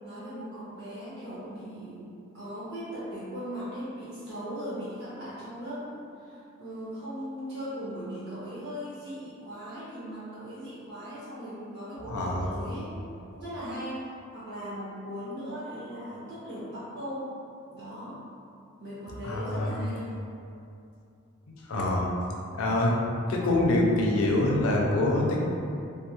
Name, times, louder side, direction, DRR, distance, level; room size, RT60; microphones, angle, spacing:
voice 1, 0.0-13.0 13.3-14.0 14.3-17.3 17.7-18.2 18.8-20.1, equal, 55° right, -11 dB, 1.4 m, -38 dB
voice 2, 12.1-12.4 19.2-19.7 21.7-22.1 22.5-23.0 23.3-25.4, left 1 dB, 85° left, -2 dB, 0.5 m, -25 dB
3.3 x 2.3 x 2.9 m, 2.6 s
head